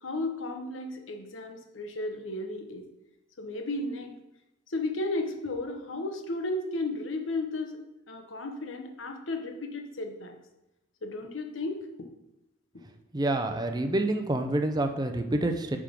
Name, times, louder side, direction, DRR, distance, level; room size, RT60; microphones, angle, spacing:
voice 1, 0.0-2.9 3.4-4.1 4.7-7.8 8.1-10.4 11.0-11.8, left 2 dB, 85° left, 4 dB, 1.1 m, -34 dB
voice 2, 13.1-15.8, right 1 dB, 20° right, 6 dB, 0.6 m, -27 dB
9.3 x 3.7 x 5.2 m, 0.92 s
head